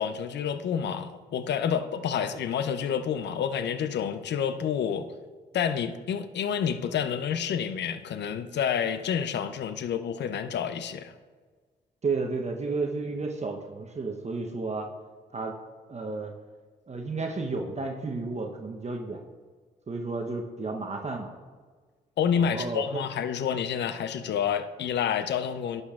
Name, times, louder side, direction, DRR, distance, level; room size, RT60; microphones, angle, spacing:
voice 1, 0.0-5.1 5.5-11.1 22.2-25.8, left 8 dB, 65° left, 0.6 m, -29 dB
voice 2, 12.0-14.9 15.3-15.5 15.9-16.3 16.9-19.2 19.9-21.3 22.3-23.0, right 3 dB, 35° right, 0.9 m, -32 dB
11.0 x 6.7 x 2.4 m
hypercardioid pair, 45°, 20 cm